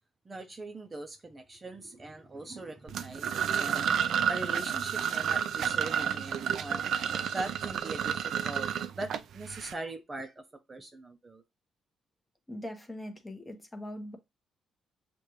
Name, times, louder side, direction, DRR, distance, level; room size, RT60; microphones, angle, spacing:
voice 1, 0.3-6.8 7.2-8.7 9.0-10.4 10.7-11.4, right 2 dB, 25° right, 0.7 m, -41 dB
sound 1, 2.9-9.7, right 8 dB, 70° right, 0.4 m, -30 dB
voice 2, 12.5-14.2, left 1 dB, 15° left, 1.1 m, -41 dB
6.5 x 2.5 x 3.0 m
cardioid pair, 90°, 0 cm